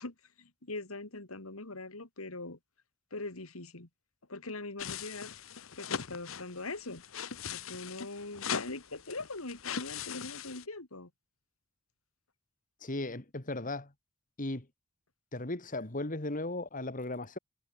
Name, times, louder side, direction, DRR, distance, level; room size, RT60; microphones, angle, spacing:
voice 1, 0.0-2.6 3.1-3.9 4.3-5.3 5.8-7.0 7.5-11.1, left 2 dB, 90° left, 2.8 m, -42 dB
sound 1, 4.8-10.6, left 7 dB, 70° left, 1.2 m, -40 dB
voice 2, 12.8-13.9 14.4-14.7 15.3-17.4, left 2 dB, 40° left, 2.1 m, -36 dB
head